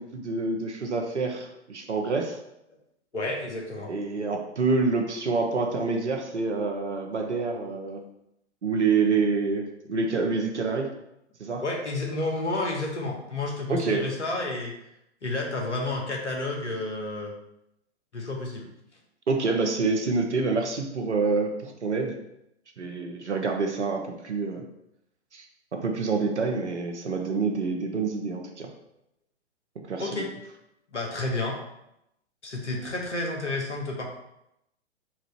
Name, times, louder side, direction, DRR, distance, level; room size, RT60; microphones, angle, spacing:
voice 1, 0.0-2.4 3.9-8.0 8.6-10.9 11.4-11.6 13.7-14.0 19.3-22.2 22.8-24.7 25.3-25.5 25.7-28.7 29.8-30.2, right 4 dB, 70° right, 3 dB, 0.9 m, -27 dB
voice 2, 3.1-3.9 11.6-14.7 15.2-17.3 18.1-18.7 30.0-30.3 30.9-31.6 32.4-34.1, left 2 dB, 75° left, 0 dB, 1.2 m, -30 dB
4.5 x 2.6 x 4.4 m, 0.83 s
figure-of-eight pair, 110°, 35 cm